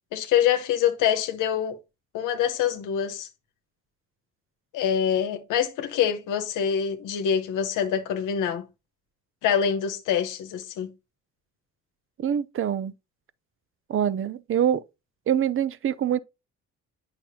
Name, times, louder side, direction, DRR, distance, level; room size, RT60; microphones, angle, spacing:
voice 1, 0.1-1.8 2.1-3.3 4.7-8.7 9.4-10.9, left 8 dB, 90° left, 1.0 m, -25 dB
voice 2, 12.2-12.9 13.9-14.8 15.3-16.2, right 9 dB, 45° right, 0.5 m, -25 dB
8.5 x 5.8 x 2.7 m
cardioid pair, 90°, 30 cm